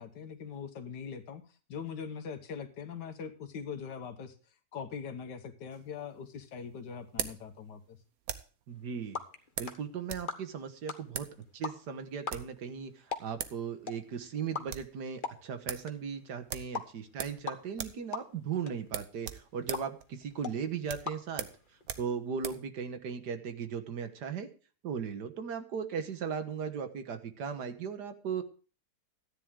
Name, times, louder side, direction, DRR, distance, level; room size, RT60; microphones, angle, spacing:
voice 1, 0.0-1.4 1.7-4.4 4.7-8.0, left 6 dB, 85° left, 9 dB, 1.8 m, -42 dB
sound 1, 5.7-8.6 9.6-10.3 10.6-10.7 11.1-11.4 12.1-12.6 13.1-13.2 13.4-13.6 13.9-14.0 14.3-14.9 15.3-15.4 15.7-15.9 16.5-17.5 17.7-18.1 18.3-18.5 18.9-22.7, right 9 dB, 60° right, 1.3 m, -40 dB
sound 2, 8.7-22.0, left 5 dB, 35° left, 1.0 m, -45 dB
voice 2, 8.7-9.2 9.6-11.3 11.5-21.5 22.0-24.5 24.8-28.4, right 6 dB, 80° right, 8 dB, 1.8 m, -37 dB
13.5 x 9.9 x 3.6 m, 0.37 s
omnidirectional pair, 1.8 m